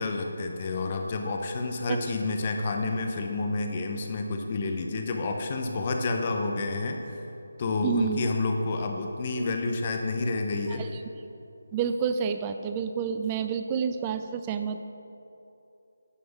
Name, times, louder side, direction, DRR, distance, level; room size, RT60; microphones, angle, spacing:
voice 1, 0.0-7.1 7.6-10.8, left 3 dB, 35° left, 3 dB, 0.8 m, -29 dB
voice 2, 7.8-8.3 10.8-10.9 11.7-14.8, right 7 dB, 20° right, 8 dB, 0.4 m, -29 dB
9.7 x 5.3 x 5.8 m, 2.8 s
figure-of-eight pair, 155°, 0 cm